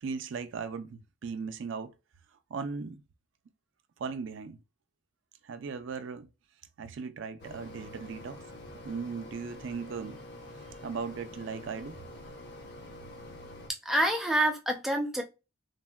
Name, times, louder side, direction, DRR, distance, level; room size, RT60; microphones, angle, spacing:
voice 1, 0.0-1.9 2.5-3.0 4.0-4.6 5.4-6.3 6.8-8.4 8.8-10.2 10.8-12.0, right 5 dB, 65° right, 0.4 m, -37 dB
Mechanisms, 7.4-13.7, left 1 dB, 55° left, 0.7 m, -46 dB
voice 2, 13.8-15.2, right 1 dB, ahead, 0.5 m, -27 dB
3.3 x 2.1 x 2.3 m
head